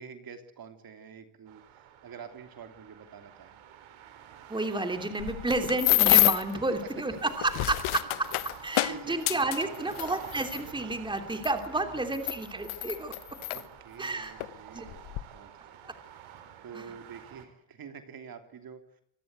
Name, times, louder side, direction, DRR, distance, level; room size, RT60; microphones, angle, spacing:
voice 1, 0.0-3.6 8.9-10.0 11.7-12.5 13.5-15.8 16.6-19.0, right 6 dB, 45° right, 7 dB, 3.2 m, -47 dB
sound 1, 1.5-17.5, right 9 dB, 75° right, 3.9 m, -49 dB
voice 2, 4.5-13.1 14.0-14.3 14.7-14.8 15.8-15.9 16.7-16.9, right 2 dB, 10° right, 7 dB, 3.0 m, -31 dB
sound 2, 5.2-6.5 7.3-10.6 11.4-11.5 12.1-13.6 14.4-14.5 14.9-15.2, left 17 dB, 80° left, 1.3 m, -27 dB
26.5 x 19.0 x 8.2 m, 0.70 s
cardioid pair, 125°, 48 cm